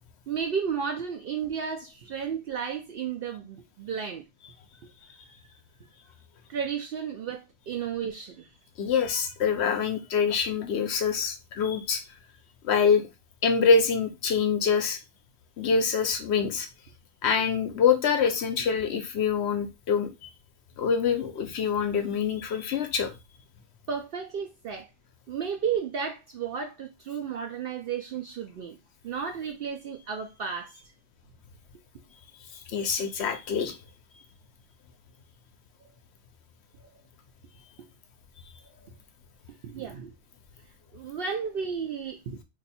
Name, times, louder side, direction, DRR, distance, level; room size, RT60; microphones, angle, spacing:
voice 1, 0.3-4.2 6.5-8.5 23.9-24.9 25.3-28.8 29.0-30.9 37.8-37.9 39.6-40.1 40.9-42.4, right 7 dB, 60° right, 0.6 m, -33 dB
voice 2, 8.8-12.0 12.6-13.1 13.4-15.0 15.6-16.7 17.2-20.3 20.8-23.1 32.7-33.8, left 6 dB, 65° left, 0.9 m, -25 dB
2.6 x 2.5 x 4.1 m
omnidirectional pair, 1.3 m